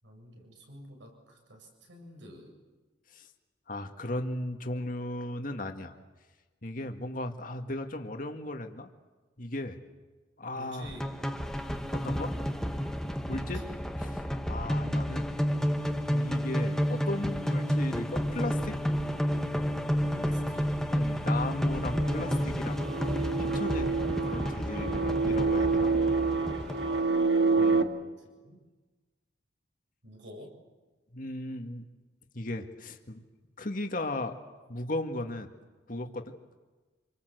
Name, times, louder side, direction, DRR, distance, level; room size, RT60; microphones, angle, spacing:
voice 1, 0.0-2.6 10.5-11.4 13.3-13.7 20.1-20.8 28.0-28.6 30.0-30.6, equal, 85° right, 2 dB, 7.6 m, -49 dB
voice 2, 3.7-5.9 6.6-8.9 9.4-9.8 10.4-10.9 11.9-12.3 13.3-13.6 14.0-15.3 16.0-18.8 20.9-22.9 23.1-25.9 27.6-27.9 31.1-31.8 32.3-33.2 33.6-34.4 34.7-35.5 35.9-36.4, left 1 dB, 50° left, 5 dB, 2.0 m, -36 dB
sound 1, 10.8-27.0, equal, 5° left, 1.2 m, -30 dB
sound 2, 21.9-27.8, right 4 dB, 65° right, 1.8 m, -28 dB
27.5 x 24.5 x 8.0 m, 1.3 s
head